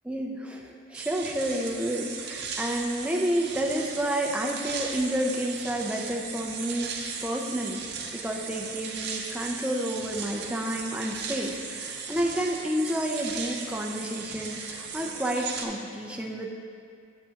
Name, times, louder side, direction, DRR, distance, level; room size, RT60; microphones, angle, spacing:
voice 1, 0.1-16.5, right 1 dB, 5° right, -1 dB, 0.5 m, -30 dB
sound 1, 0.9-15.7, right 5 dB, 55° right, 0.7 m, -37 dB
8.8 x 7.9 x 2.9 m, 2.4 s
head